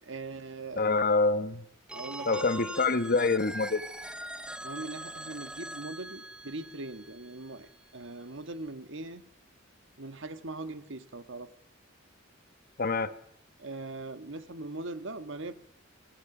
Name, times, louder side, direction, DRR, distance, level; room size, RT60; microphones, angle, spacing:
voice 1, 0.0-0.9 1.9-2.4 4.6-9.2 10.0-11.5 13.6-15.5, right 2 dB, 65° right, 10 dB, 1.5 m, -40 dB
voice 2, 0.8-1.6 2.3-3.8 12.8-13.1, left 3 dB, 50° left, 12 dB, 1.1 m, -26 dB
Telephone, 1.9-7.7, right 1 dB, 5° right, 0.9 m, -42 dB
26.0 x 17.5 x 6.1 m, 0.76 s
head